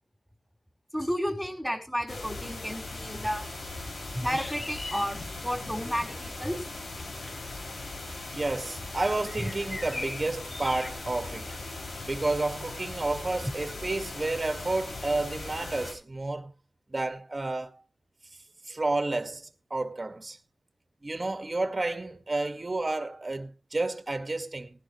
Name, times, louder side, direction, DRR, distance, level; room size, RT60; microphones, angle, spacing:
voice 1, 0.9-3.4 4.1-6.6, equal, 5° left, 4.7 m, -32 dB
sound 1, 2.1-15.9, left 2 dB, 80° left, 6.9 m, -39 dB
sound 2, 4.3-10.9, left 2 dB, 40° left, 2.9 m, -43 dB
voice 2, 8.3-11.5 12.0-16.5 16.9-17.8 18.7-20.4 21.0-24.8, right 2 dB, 35° right, 1.9 m, -31 dB
18.5 x 11.5 x 3.2 m
wide cardioid pair, 65°, 0 cm